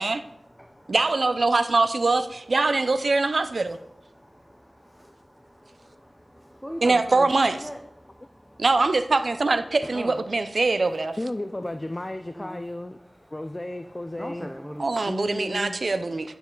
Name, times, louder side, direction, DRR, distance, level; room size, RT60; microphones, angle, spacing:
voice 1, 0.3-0.9 3.7-3.8 4.1-8.6 9.8-10.2 12.3-12.7 13.2-13.3 13.7-13.8 14.2-15.1 16.3-16.4, equal, ahead, 4 dB, 0.8 m, -40 dB
voice 2, 0.9-3.8 6.8-7.6 8.6-11.2 14.8-16.3, right 3 dB, 70° right, 11 dB, 0.6 m, -23 dB
voice 3, 11.2-13.0 13.3-14.5 15.0-15.8, left 1 dB, 30° left, 9 dB, 0.5 m, -33 dB
9.6 x 7.0 x 3.9 m, 0.80 s
cardioid pair, 45°, 0 cm